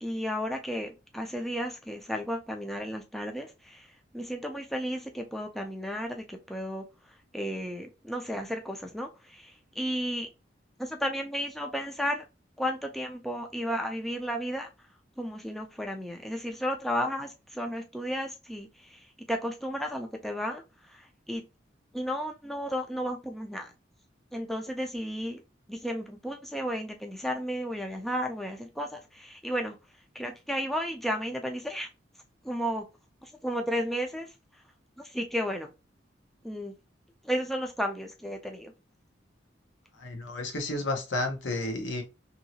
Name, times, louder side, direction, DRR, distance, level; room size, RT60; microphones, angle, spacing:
voice 1, 0.0-3.9 4.1-6.8 7.3-10.3 10.8-12.2 12.6-14.7 15.2-21.4 21.9-23.7 24.3-25.4 25.7-29.8 30.1-31.9 32.4-32.8 33.2-34.3 35.0-35.7 36.4-36.7 37.2-38.7, equal, ahead, 0.4 m, -33 dB
voice 2, 40.0-42.0, left 2 dB, 85° left, 0.9 m, -31 dB
3.0 x 2.8 x 2.8 m
head